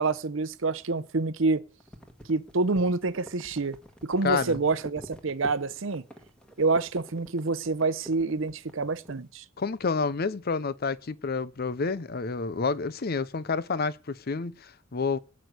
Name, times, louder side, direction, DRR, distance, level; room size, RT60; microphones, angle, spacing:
voice 1, 0.0-1.6 2.3-3.8 4.1-6.0 6.6-9.4, right 3 dB, 60° right, 0.8 m, -27 dB
sound 1, 1.8-9.2, equal, 5° left, 1.6 m, -47 dB
voice 2, 4.2-4.6 9.6-15.2, left 4 dB, 45° left, 0.6 m, -29 dB
18.5 x 6.4 x 8.2 m
head